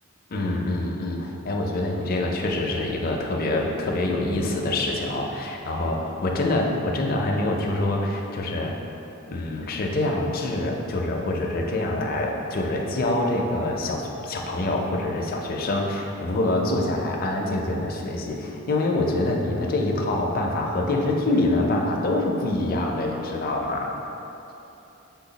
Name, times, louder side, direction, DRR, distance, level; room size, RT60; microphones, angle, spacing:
voice 1, 0.3-8.7 9.3-23.9, left 2 dB, 45° left, 0 dB, 0.5 m, -25 dB
5.7 x 2.3 x 3.9 m, 2.9 s
head